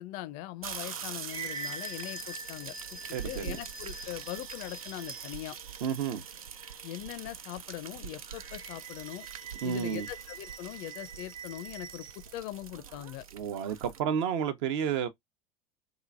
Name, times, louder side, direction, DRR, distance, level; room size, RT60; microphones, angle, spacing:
voice 1, 0.0-5.6 6.8-9.3 9.6-13.2, left 14 dB, 50° left, 0.4 m, -41 dB
sound 1, 0.6-14.0, right 7 dB, 85° right, 0.4 m, -44 dB
sound 2, 0.9-5.5 8.3-12.3, right 3 dB, 25° right, 0.5 m, -44 dB
voice 2, 3.1-3.6 5.8-6.2 9.6-10.1 13.3-15.1, right 8 dB, 60° right, 0.8 m, -31 dB
2.9 x 2.5 x 2.4 m
hypercardioid pair, 80°, 18 cm